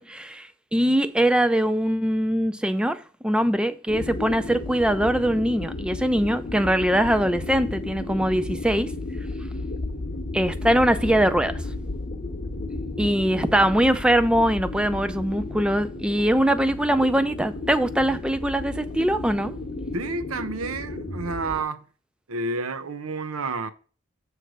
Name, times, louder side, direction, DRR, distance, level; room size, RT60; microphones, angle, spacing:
voice 1, 0.0-8.9 10.3-11.6 13.0-19.5, right 1 dB, 5° right, 0.4 m, -22 dB
sound 1, 3.9-21.6, left 2 dB, 45° left, 0.9 m, -33 dB
voice 2, 19.9-21.8 22.3-23.7, right 3 dB, 90° right, 0.7 m, -30 dB
7.6 x 3.3 x 6.1 m
head